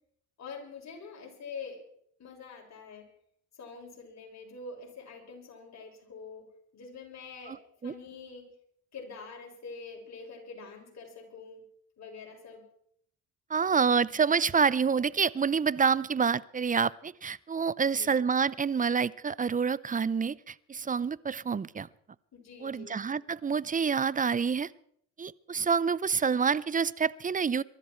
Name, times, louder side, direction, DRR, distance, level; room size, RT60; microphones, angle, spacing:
voice 1, 0.4-1.8 2.2-3.1 3.6-8.5 8.9-11.7 12.0-12.6 17.8-18.1 22.3-23.0, left 4 dB, 50° left, 1 dB, 6.9 m, -45 dB
voice 2, 13.5-21.9 22.6-24.7 25.2-27.6, right 6 dB, 20° right, 21 dB, 0.6 m, -27 dB
23.0 x 13.0 x 4.6 m, 0.67 s
supercardioid pair, 75°, 36 cm